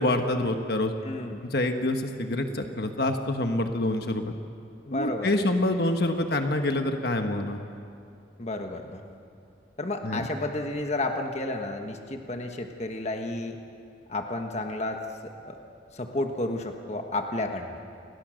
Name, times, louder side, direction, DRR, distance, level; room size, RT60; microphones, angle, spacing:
voice 1, 0.0-0.9 1.4-4.2 4.9-7.6 10.0-10.2, left 1 dB, 55° left, 5 dB, 1.4 m, -26 dB
voice 2, 1.0-1.4 4.8-5.4 8.4-9.1 9.8-13.6 14.1-15.6 15.9-17.8, left 2 dB, 35° left, 4 dB, 1.4 m, -32 dB
29.5 x 21.0 x 6.5 m, 2.5 s
head